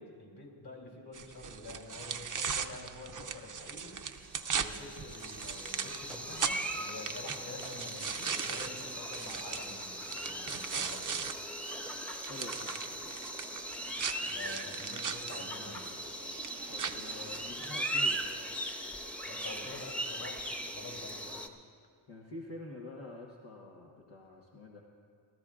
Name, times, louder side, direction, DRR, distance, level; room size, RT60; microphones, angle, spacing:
voice 1, 0.0-4.0 4.5-11.1 14.2-15.9 19.2-21.4, left 2 dB, 50° left, -1 dB, 3.5 m, -48 dB
sound 1, 1.1-11.3 11.7-17.7, right 6 dB, 40° right, 0.6 m, -39 dB
sound 2, 4.2-21.5, right 1 dB, 5° left, 0.9 m, -39 dB
voice 2, 12.3-13.2 16.7-18.5 22.1-24.8, left 2 dB, 75° left, -2 dB, 1.3 m, -47 dB
28.0 x 13.5 x 2.5 m, 2.2 s
wide cardioid pair, 80°, 48 cm